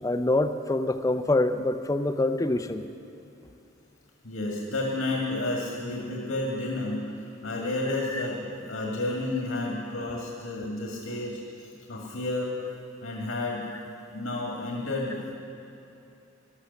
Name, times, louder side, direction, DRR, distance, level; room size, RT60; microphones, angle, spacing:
voice 1, 0.0-2.8 8.1-8.2, left 2 dB, 15° left, 9 dB, 0.4 m, -25 dB
voice 2, 4.2-7.0 7.4-12.5 13.0-13.7 14.1-15.3, left 2 dB, 85° left, -2 dB, 1.9 m, -31 dB
13.0 x 12.0 x 7.0 m, 2.7 s
head